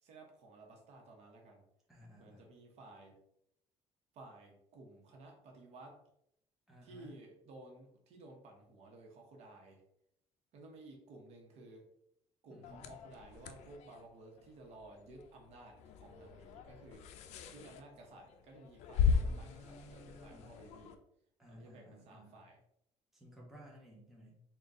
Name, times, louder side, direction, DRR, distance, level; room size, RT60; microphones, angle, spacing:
voice 1, 0.0-1.6 2.2-3.1 4.1-6.0 6.8-9.8 10.5-11.8 12.4-17.0 17.5-21.0 21.5-22.6, right 2 dB, 65° right, 1 dB, 1.0 m, -55 dB
voice 2, 1.9-2.5 6.7-7.1 12.5-12.9 19.1-20.7 21.4-22.4 23.1-24.4, equal, ahead, -4 dB, 0.8 m, -56 dB
sound 1, 12.6-21.0, left 6 dB, 70° left, 0.4 m, -38 dB
4.0 x 2.4 x 3.5 m, 0.75 s
cardioid pair, 165°, 12 cm